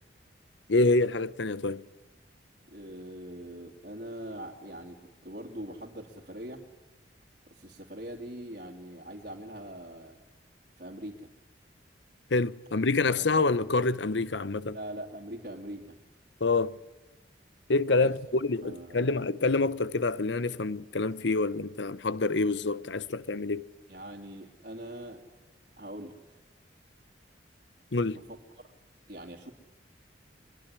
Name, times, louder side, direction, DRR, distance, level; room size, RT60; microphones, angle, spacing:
voice 1, 0.7-1.8 12.3-14.8 16.4-16.7 17.7-23.6 27.9-28.2, left 3 dB, 75° left, 0.9 m, -27 dB
voice 2, 2.7-5.0 5.2-6.6 7.5-10.2 10.8-11.3 13.2-13.5 14.7-16.0 18.0-18.1 18.6-19.1 23.9-25.2 25.8-26.1 28.3-28.4 29.1-29.5, right 1 dB, 50° right, 2.8 m, -42 dB
23.0 x 22.0 x 9.9 m
head